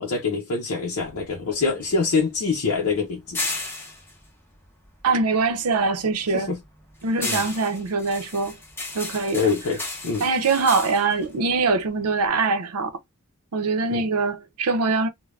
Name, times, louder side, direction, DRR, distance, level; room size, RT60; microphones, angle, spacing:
voice 1, 0.0-3.4 6.3-6.6 7.2-7.4 9.3-10.3 13.9-14.0, left 4 dB, 65° left, 0.6 m, -25 dB
sound 1, 1.0-5.5 5.8-12.3, left 2 dB, 10° left, 0.7 m, -35 dB
voice 2, 5.0-6.5 7.0-8.6 8.9-9.5 10.2-12.9 13.5-15.1, right 4 dB, 80° right, 0.6 m, -23 dB
2.4 x 2.2 x 3.2 m
head